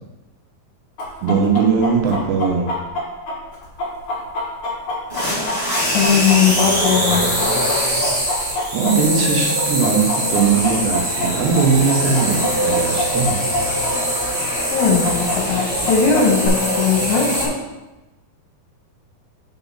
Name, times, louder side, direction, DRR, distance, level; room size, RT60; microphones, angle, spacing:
Chicken rooster, 1.0-9.3 9.6-13.9 14.2-14.3 14.8-16.5, left 2 dB, 60° left, 2.2 m, -26 dB
voice 1, 1.2-2.7 8.7-13.4, right 5 dB, 75° right, 1 dB, 2.9 m, -19 dB
sound 1, 5.1-17.4, equal, 35° right, 0.9 m, -22 dB
voice 2, 5.9-7.3 14.7-17.6, left 6 dB, 75° left, 0 dB, 3.0 m, -18 dB
7.0 x 5.5 x 4.0 m, 1.1 s
omnidirectional pair, 5.3 m